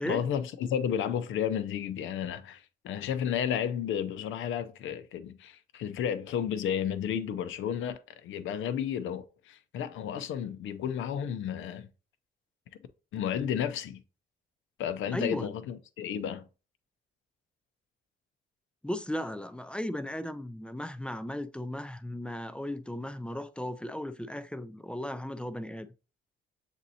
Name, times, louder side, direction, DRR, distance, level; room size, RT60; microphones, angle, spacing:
voice 1, 0.0-11.9 13.1-14.0 14.8-16.4, left 8 dB, 80° left, 0.6 m, -32 dB
voice 2, 15.1-15.5 18.8-25.9, left 1 dB, 5° left, 0.4 m, -36 dB
7.2 x 2.7 x 2.7 m
cardioid pair, 90°, 20 cm